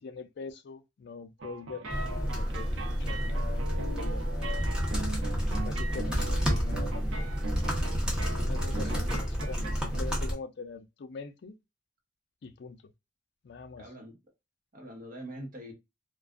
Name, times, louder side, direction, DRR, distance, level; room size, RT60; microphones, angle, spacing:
voice 1, 0.0-4.7 5.6-7.3 8.4-11.6 12.4-12.8 13.4-13.8, left 4 dB, 60° left, 0.4 m, -43 dB
sound 1, 1.4-10.2, right 3 dB, 75° right, 0.6 m, -40 dB
sound 2, 1.9-10.3, equal, 5° right, 0.7 m, -30 dB
voice 2, 8.8-9.1 13.8-14.2 14.7-15.7, equal, 45° right, 1.0 m, -44 dB
2.4 x 2.2 x 2.2 m
head